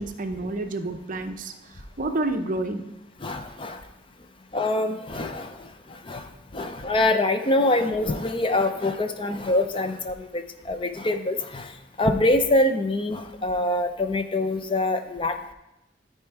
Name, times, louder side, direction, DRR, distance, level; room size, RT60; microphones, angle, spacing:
voice 1, 0.0-2.8, right 2 dB, 45° right, 7 dB, 0.6 m, -29 dB
voice 2, 3.2-3.8 4.5-15.5, left 2 dB, 25° left, 7 dB, 0.5 m, -25 dB
13.0 x 4.4 x 4.6 m, 0.93 s
head